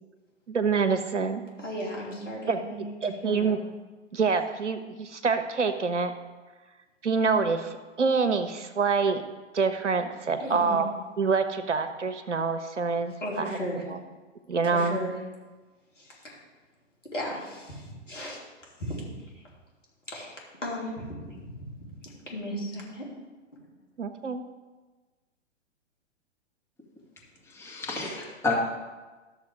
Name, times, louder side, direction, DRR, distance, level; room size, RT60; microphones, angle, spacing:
voice 1, 0.5-1.4 2.5-2.6 3.0-3.6 4.1-6.1 7.0-9.2 9.5-10.9 11.2-13.5 13.9-14.0 14.5-15.0 24.0-24.4, right 5 dB, 75° right, 9 dB, 1.0 m, -26 dB
voice 2, 1.6-3.6 10.4-10.8 13.2-13.8 14.6-15.1 16.0-16.4 17.1-18.4 18.8-19.4 20.1-20.4 20.6-21.8 22.3-23.1, equal, 85° left, -4 dB, 3.2 m, -36 dB
voice 3, 27.5-28.5, left 3 dB, 5° left, -4 dB, 1.8 m, -30 dB
12.5 x 6.7 x 3.7 m, 1.3 s
figure-of-eight pair, 115°, 36 cm